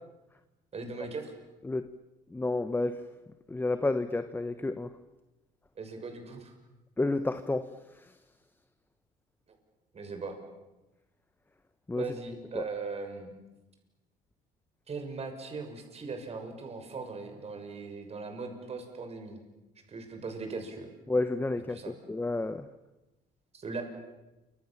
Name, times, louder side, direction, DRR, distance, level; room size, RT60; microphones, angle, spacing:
voice 1, 0.7-1.3 5.8-6.5 9.9-10.4 12.0-13.3 14.9-19.4 19.9-20.9 21.7-22.0 23.5-23.8, right 4 dB, 40° right, 6.5 m, -39 dB
voice 2, 2.3-3.1 3.5-4.9 7.0-8.1 11.9-12.1 12.5-12.6 21.1-22.7, left 2 dB, 10° left, 1.1 m, -31 dB
28.5 x 26.0 x 7.4 m
cardioid pair, 110°, 17 cm